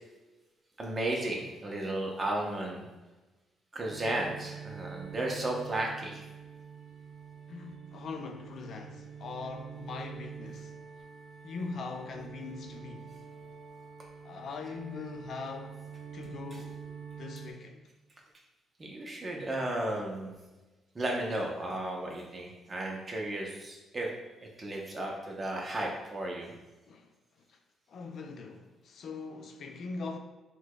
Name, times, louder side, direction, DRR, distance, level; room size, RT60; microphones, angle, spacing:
voice 1, 0.8-2.9 3.7-6.3 16.5-16.6 18.8-20.3 20.9-24.1 24.4-26.5, right 1 dB, 30° right, 0.7 m, -34 dB
sound 1, 3.9-17.5, right 6 dB, 75° right, 0.5 m, -46 dB
voice 2, 7.5-10.7 11.4-13.1 14.2-15.8 16.1-16.8 17.2-17.8 26.9-27.1 27.5-27.6 27.9-30.2, left 4 dB, 60° left, 0.3 m, -41 dB
4.5 x 2.2 x 2.2 m
cardioid pair, 90°, 0 cm